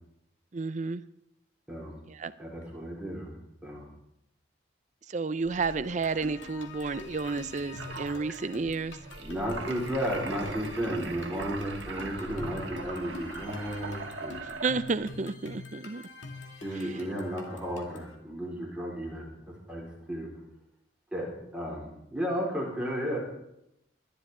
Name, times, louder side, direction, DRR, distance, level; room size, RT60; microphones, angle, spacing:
voice 1, 0.5-1.0 2.1-2.3 5.1-9.0 14.6-16.0, right 4 dB, 40° right, 15 dB, 0.5 m, -31 dB
voice 2, 2.4-3.3 3.6-3.9 9.2-13.9 14.2-14.4 16.6-19.3 19.7-20.3 21.1-23.2, equal, 5° right, -4 dB, 4.4 m, -33 dB
sound 1, 5.4-15.2, right 3 dB, 75° right, 1.6 m, -41 dB
sound 2, 5.8-18.2, left 4 dB, 85° left, 2.2 m, -46 dB
21.5 x 12.0 x 3.8 m, 0.82 s
head